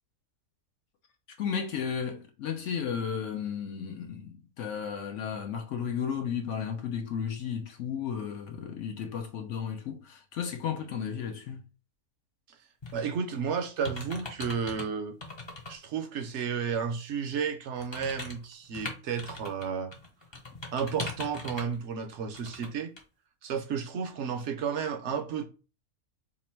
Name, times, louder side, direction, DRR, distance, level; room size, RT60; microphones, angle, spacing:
voice 1, 1.3-11.7, left 7 dB, 65° left, 0.8 m, -34 dB
sound 1, 12.8-13.1 13.6-14.9 15.2-15.7 16.2-16.3 17.8-19.7 19.9-21.8 22.3-22.7 23.0-23.1, left 3 dB, 30° left, 0.5 m, -40 dB
voice 2, 12.9-15.2 15.7-19.9 20.7-22.9 23.4-25.5, right 6 dB, 65° right, 0.8 m, -32 dB
2.9 x 2.5 x 4.3 m
omnidirectional pair, 1.5 m